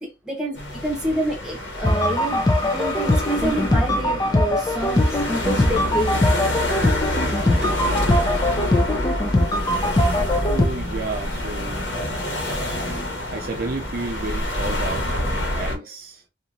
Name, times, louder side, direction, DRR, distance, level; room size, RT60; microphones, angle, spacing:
voice 1, 0.0-6.2 7.6-7.7, right 1 dB, 5° right, 1.1 m, -28 dB
sound 1, 0.6-15.8, left 1 dB, 90° left, 1.1 m, -27 dB
sound 2, 1.8-10.7, left 1 dB, 20° left, 0.4 m, -21 dB
voice 2, 9.5-10.0 10.5-12.9 13.3-16.2, right 3 dB, 55° right, 0.4 m, -33 dB
2.9 x 2.5 x 2.5 m
head